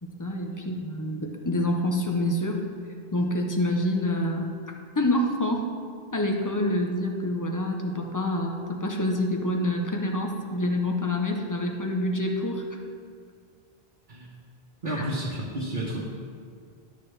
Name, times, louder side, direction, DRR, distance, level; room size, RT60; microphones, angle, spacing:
voice 1, 0.0-2.6 3.1-4.5 5.0-5.7 6.1-12.6 14.9-15.0, left 1 dB, 20° left, 2 dB, 0.7 m, -27 dB
voice 2, 14.8-16.0, right 1 dB, 50° right, -6 dB, 1.3 m, -31 dB
12.0 x 6.6 x 3.3 m, 2.2 s
omnidirectional pair, 1.1 m